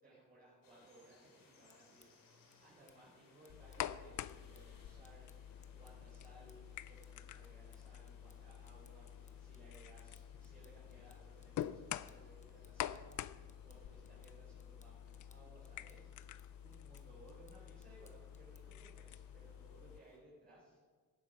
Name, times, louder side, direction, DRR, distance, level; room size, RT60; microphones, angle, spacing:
voice 1, 0.0-13.3 13.6-20.8, right 1 dB, 25° right, -8 dB, 4.0 m, -63 dB
sound 1, 0.6-20.2, left 3 dB, 90° left, 2.7 m, -68 dB
sound 2, 1.7-18.9, left 4 dB, 20° left, 0.8 m, -73 dB
sound 3, 3.5-20.0, left 11 dB, 65° left, 0.5 m, -48 dB
17.0 x 7.8 x 5.3 m, 1.6 s
cardioid pair, 135°, 33 cm